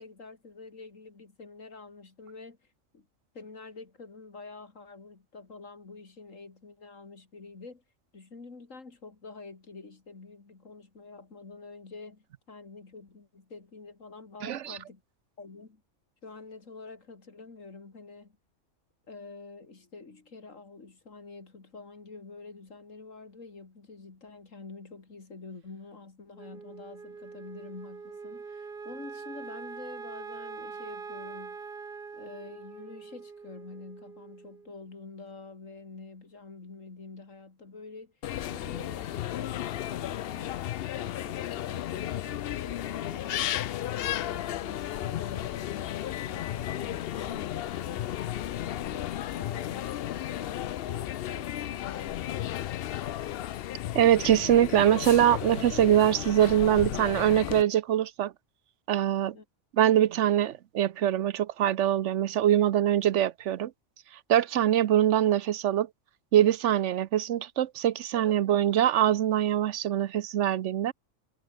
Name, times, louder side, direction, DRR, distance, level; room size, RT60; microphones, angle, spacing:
voice 1, 0.0-2.6 2.9-3.1 3.3-7.8 8.1-15.0 15.4-15.8 16.2-18.4 19.1-31.6 32.1-38.1 38.4-43.6 43.9-52.7 59.3-59.4, left 3 dB, 80° left, 3.3 m, -47 dB
voice 2, 14.4-14.8 53.9-58.3 58.9-59.4 59.8-63.7 64.1-65.9 66.3-70.9, right 11 dB, 70° right, 1.0 m, -23 dB
Wind instrument woodwind instrument, 26.3-34.8, right 5 dB, 45° right, 1.6 m, -43 dB
sound 1, 38.2-57.6, left 12 dB, 60° left, 0.6 m, -34 dB
omnidirectional pair, 1.3 m